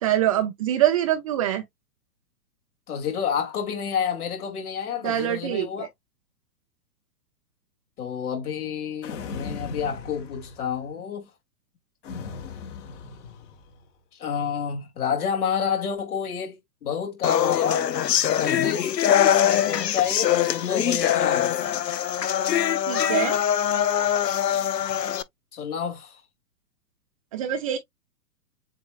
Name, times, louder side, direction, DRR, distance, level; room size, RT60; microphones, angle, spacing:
voice 1, 0.0-1.6 5.0-5.9 22.9-23.4 27.3-27.8, right 12 dB, 25° right, 0.5 m, -24 dB
voice 2, 2.9-5.9 8.0-11.3 14.1-16.6 16.8-17.9 18.4-18.9 19.2-21.5 25.5-26.2, left 7 dB, 65° left, 2.7 m, -29 dB
sound 1, 9.0-10.9 12.0-13.8, left 5 dB, 50° left, 1.6 m, -38 dB
sound 2, 17.2-25.2, left 10 dB, 85° left, 0.7 m, -23 dB
7.4 x 2.6 x 2.3 m
figure-of-eight pair, 120°, 48 cm